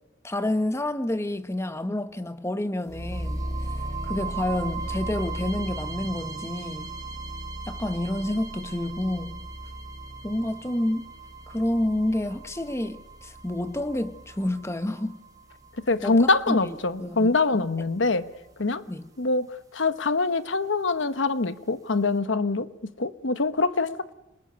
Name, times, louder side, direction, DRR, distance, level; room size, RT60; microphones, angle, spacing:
voice 1, 0.2-3.4 4.0-7.0 7.7-9.4 10.2-11.1 11.5-15.2 16.0-17.6 18.9-19.1, left 1 dB, 15° left, 1.2 m, -29 dB
sound 1, 2.9-16.9, right 2 dB, 20° right, 3.6 m, -36 dB
voice 2, 15.9-18.3 18.6-18.8 19.2-22.7 23.0-24.1, left 3 dB, 70° left, 1.2 m, -24 dB
29.5 x 26.5 x 6.9 m
head